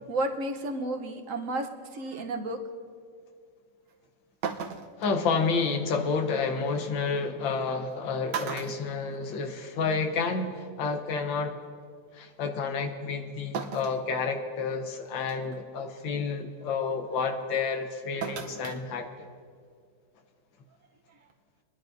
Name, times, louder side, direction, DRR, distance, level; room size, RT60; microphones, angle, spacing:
voice 1, 0.0-1.7 1.9-2.6, right 2 dB, 55° right, 4 dB, 1.1 m, -32 dB
sound 1, 3.9-4.0 4.4-5.1 6.7-6.8 7.8-7.9 8.3-9.7 10.0-10.1 11.4-11.5 13.5-14.0 14.6-14.7 15.3-15.6 18.2-18.8 19.1-19.2, right 7 dB, 75° right, 1.4 m, -35 dB
voice 2, 5.0-11.5 12.1-19.3, left 4 dB, 90° left, 5 dB, 1.7 m, -30 dB
25.5 x 10.5 x 2.6 m, 2.1 s
omnidirectional pair, 2.0 m